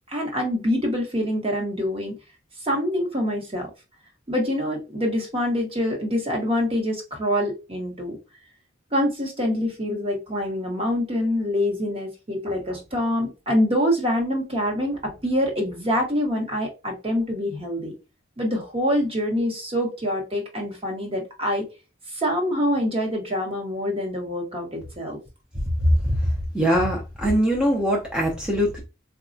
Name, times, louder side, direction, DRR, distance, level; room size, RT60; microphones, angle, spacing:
voice 1, 0.1-2.1 2.6-3.7 4.3-8.2 8.9-17.9 18.4-21.6 22.1-25.2, equal, 30° right, 1 dB, 0.9 m, -25 dB
voice 2, 26.5-28.8, equal, 5° right, -2 dB, 0.5 m, -22 dB
4.0 x 2.3 x 2.5 m, 0.29 s
head